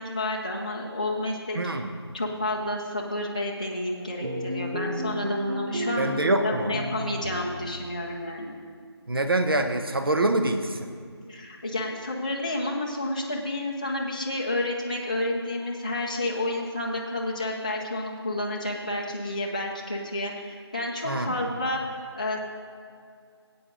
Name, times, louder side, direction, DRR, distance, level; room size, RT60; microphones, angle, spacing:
voice 1, 0.0-1.6 2.1-6.1 6.4-8.5 11.3-21.8 22.2-22.4, left 1 dB, 15° left, -3 dB, 0.5 m, -30 dB
voice 2, 1.5-1.9 6.0-6.8 9.1-10.9 21.0-21.3, right 2 dB, 55° right, 6 dB, 1.0 m, -25 dB
sound 1, 4.2-7.9, equal, 85° right, 1.0 m, -32 dB
15.5 x 8.7 x 3.8 m, 2.2 s
figure-of-eight pair, 170°, 14 cm